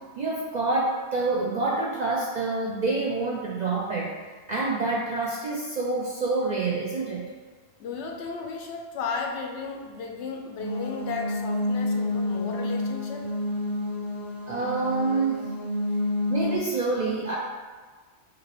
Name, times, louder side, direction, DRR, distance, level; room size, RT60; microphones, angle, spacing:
voice 1, 0.0-4.1 4.5-7.3 14.5-15.5 16.3-17.4, right 3 dB, 60° right, -4 dB, 0.4 m, -27 dB
voice 2, 7.8-13.3, left 5 dB, 75° left, 3 dB, 0.9 m, -34 dB
sound 1, 10.6-16.6, left 2 dB, ahead, 0.7 m, -29 dB
5.2 x 2.9 x 3.0 m, 1.4 s
omnidirectional pair, 1.2 m